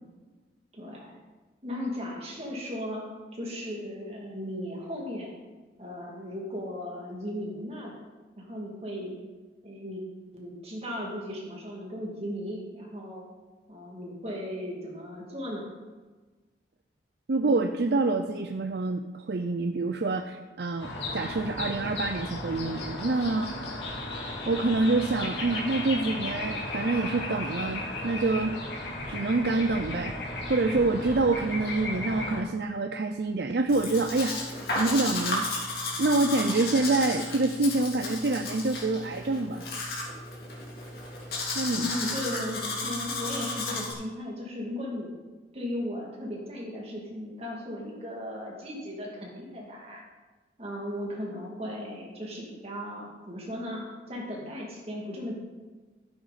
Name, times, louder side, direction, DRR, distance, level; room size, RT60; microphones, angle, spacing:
voice 1, 0.7-1.2 1.6-3.1 3.3-5.3 5.8-8.0 8.4-9.2 9.6-10.0 10.3-13.2 13.7-15.7 41.7-45.1 45.5-50.0 50.6-55.4, left 1 dB, 35° right, -2 dB, 2.5 m, -36 dB
voice 2, 17.3-23.5 24.5-28.6 29.1-30.2 30.5-34.4 34.8-39.6 41.6-41.8, right 3 dB, 65° right, 6 dB, 0.5 m, -27 dB
sound 1, 20.8-32.4, left 2 dB, 75° left, 2.3 m, -35 dB
Domestic sounds home sounds, 33.7-43.9, left 2 dB, 55° left, 2.9 m, -33 dB
13.5 x 9.5 x 4.2 m, 1.3 s
head